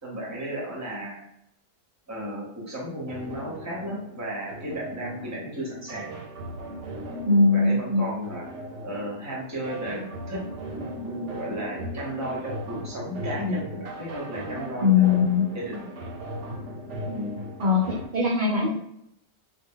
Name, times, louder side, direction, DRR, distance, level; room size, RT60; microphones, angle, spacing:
voice 1, 0.0-1.3 2.1-6.1 7.5-8.4 8.8-10.4 10.7-15.2 15.5-15.9 17.1-17.4, equal, 15° right, -4 dB, 0.7 m, -34 dB
sound 1, 3.1-18.1, right 1 dB, 90° right, 0.9 m, -38 dB
voice 2, 7.3-8.1 14.8-15.5 17.6-18.7, left 4 dB, 60° right, -3 dB, 0.5 m, -20 dB
2.2 x 2.1 x 3.5 m, 0.77 s
omnidirectional pair, 1.2 m